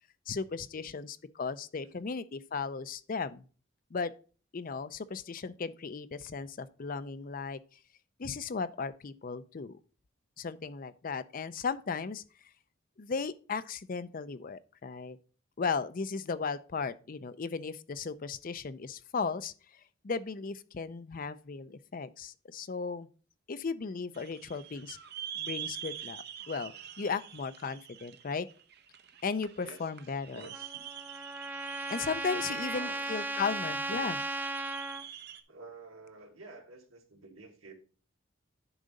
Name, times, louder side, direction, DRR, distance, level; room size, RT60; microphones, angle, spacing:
voice 1, 0.3-3.4 3.9-4.1 4.5-7.6 8.2-9.8 10.4-12.2 13.0-15.2 15.6-23.1 23.5-25.0 25.4-28.5 29.2-30.5 31.9-34.2, left 5 dB, 45° left, 0.5 m, -36 dB
sound 1, 24.1-35.4, right 10 dB, 55° right, 0.8 m, -45 dB
voice 2, 29.6-30.8 32.3-33.0 33.8-34.0 35.5-37.7, right 3 dB, 90° right, 1.7 m, -50 dB
Trumpet, 30.5-35.0, right 2 dB, 10° right, 0.5 m, -36 dB
10.0 x 3.9 x 5.1 m
head